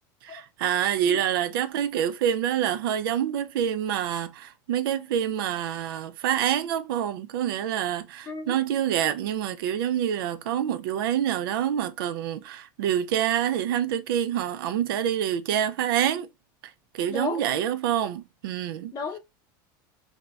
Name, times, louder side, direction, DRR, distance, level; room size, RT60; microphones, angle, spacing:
voice 1, 0.2-16.3 16.9-18.9, right 10 dB, 85° right, 0.4 m, -27 dB
voice 2, 17.1-17.5 18.9-19.2, left 4 dB, 30° left, 0.7 m, -33 dB
3.1 x 2.1 x 2.3 m
supercardioid pair, 130°, 11 cm